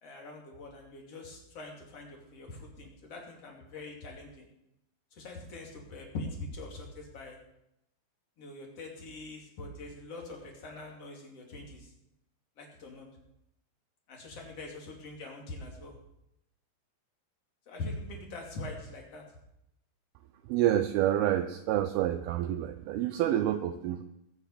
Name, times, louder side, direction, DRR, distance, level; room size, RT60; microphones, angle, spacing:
voice 1, 0.0-4.5 5.1-7.4 8.4-11.9 12.6-13.1 14.1-16.0 17.7-19.2, left 2 dB, 40° left, 0 dB, 3.2 m, -43 dB
voice 2, 20.5-24.0, right 12 dB, 80° right, 7 dB, 2.3 m, -28 dB
21.0 x 9.0 x 4.9 m, 0.82 s
omnidirectional pair, 5.1 m